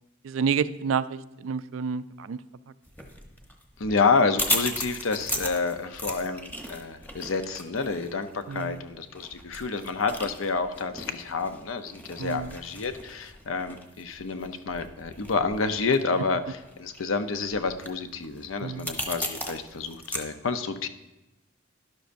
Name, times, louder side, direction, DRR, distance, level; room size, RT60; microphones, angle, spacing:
voice 1, 0.2-2.4 8.5-8.8 12.2-12.6 18.6-18.9, right 6 dB, 80° right, 15 dB, 0.4 m, -29 dB
sound 1, 2.9-20.2, left 1 dB, 10° left, 0.9 m, -37 dB
voice 2, 3.8-20.9, left 4 dB, 85° left, 9 dB, 0.7 m, -29 dB
11.5 x 11.0 x 2.6 m, 1.0 s
head